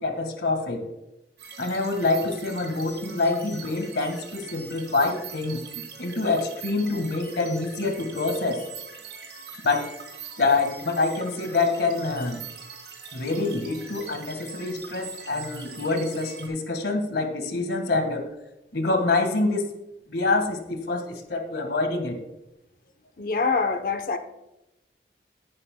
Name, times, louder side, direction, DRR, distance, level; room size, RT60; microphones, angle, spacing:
voice 1, 0.0-0.9 1.6-5.6 6.0-8.6 9.6-9.9 10.4-12.4 13.1-18.3 18.7-19.7 20.1-22.2, left 3 dB, 75° left, 6 dB, 1.7 m, -26 dB
sound 1, 1.4-16.5, right 5 dB, 75° right, 3.7 m, -42 dB
voice 2, 23.2-24.2, left 4 dB, 50° left, 8 dB, 0.7 m, -25 dB
15.0 x 9.8 x 2.2 m, 0.90 s
head